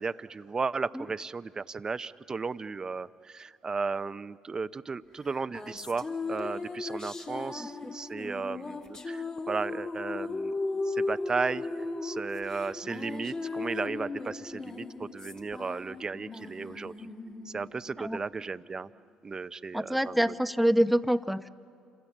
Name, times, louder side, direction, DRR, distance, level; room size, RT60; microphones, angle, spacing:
voice 1, 0.0-10.5 10.8-17.1 17.4-18.9 19.2-20.3, right 4 dB, 30° right, 14 dB, 0.7 m, -35 dB
sound 1, 5.2-18.9, left 3 dB, 35° left, 2.7 m, -37 dB
voice 2, 19.7-21.5, equal, ahead, 11 dB, 0.9 m, -26 dB
29.0 x 26.5 x 7.3 m, 2.5 s
supercardioid pair, 70°, 2 cm